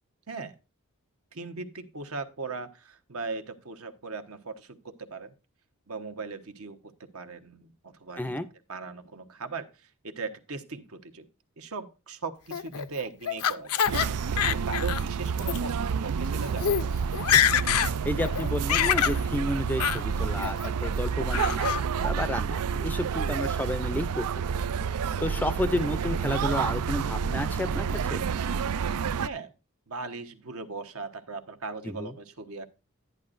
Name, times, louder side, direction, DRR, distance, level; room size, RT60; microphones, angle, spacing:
voice 1, 1.3-5.3 5.9-8.4 8.7-11.3 11.6-16.9 29.2-29.5 29.9-32.6, right 4 dB, 70° right, 8 dB, 1.1 m, -39 dB
Laughter, 12.5-14.1 14.4-15.0 15.4-15.6 16.2-16.3 16.6-16.8 17.1-17.9 18.2-19.2 19.8-20.0 20.4-20.9 21.3-21.8, left 9 dB, 80° left, 0.6 m, -25 dB
sound 1, 13.9-29.3, right 6 dB, 90° right, 0.4 m, -29 dB
voice 2, 18.1-21.7 22.0-24.4 25.2-28.2 31.8-32.1, left 1 dB, 10° left, 12 dB, 0.5 m, -31 dB
11.0 x 10.5 x 2.5 m, 0.29 s
head